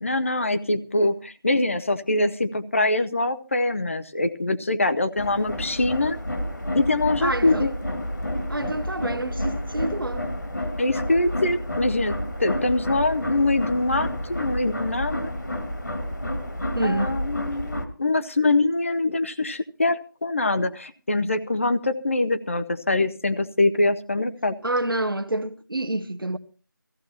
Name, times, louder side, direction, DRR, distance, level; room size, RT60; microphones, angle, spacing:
voice 1, 0.0-6.2 6.7-7.7 10.8-15.3 16.8-24.5, left 2 dB, 40° left, 0.7 m, -24 dB
sound 1, 5.2-17.9, left 1 dB, 60° left, 2.0 m, -30 dB
voice 2, 7.2-7.7 8.5-10.3 16.7-17.1 24.6-26.4, right 1 dB, 85° right, 1.0 m, -27 dB
20.0 x 15.0 x 2.8 m
figure-of-eight pair, 165°, 11 cm